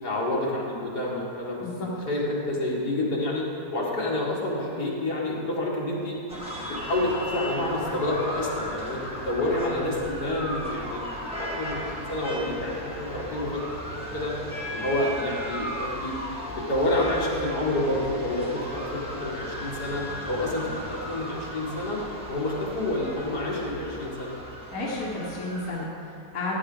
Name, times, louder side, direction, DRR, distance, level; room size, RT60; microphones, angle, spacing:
voice 1, 0.0-3.4 3.7-6.2 6.6-11.1 11.4-13.6 14.1-14.3 14.7-16.2 16.6-22.0 22.3-24.3, left 1 dB, 80° left, -5 dB, 2.6 m, -28 dB
voice 2, 1.6-1.9 24.7-26.6, left 2 dB, 60° left, -5 dB, 2.0 m, -32 dB
sound 1, 6.3-25.9, equal, 5° right, 1.5 m, -36 dB
14.5 x 9.9 x 3.9 m, 2.9 s
omnidirectional pair, 1.7 m